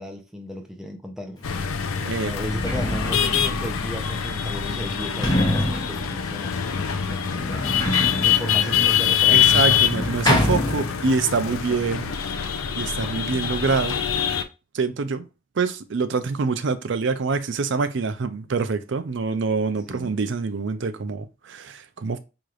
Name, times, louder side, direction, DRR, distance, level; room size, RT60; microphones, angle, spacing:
voice 1, 0.0-7.7 8.2-9.8 10.7-11.0 11.4-11.6 19.9-20.2, equal, ahead, 0.5 m, -36 dB
sound 1, 1.4-14.4, left 9 dB, 85° left, 0.5 m, -24 dB
Sliding door, 1.5-1.6 2.2-11.4 11.6-12.4, left 1 dB, 20° left, 0.8 m, -27 dB
voice 2, 2.0-2.3 9.3-12.1 12.8-14.0 14.7-15.2 15.6-22.2, right 4 dB, 60° right, 0.5 m, -25 dB
sound 2, 4.2-9.7, equal, 40° left, 1.1 m, -43 dB
4.7 x 2.9 x 2.4 m
head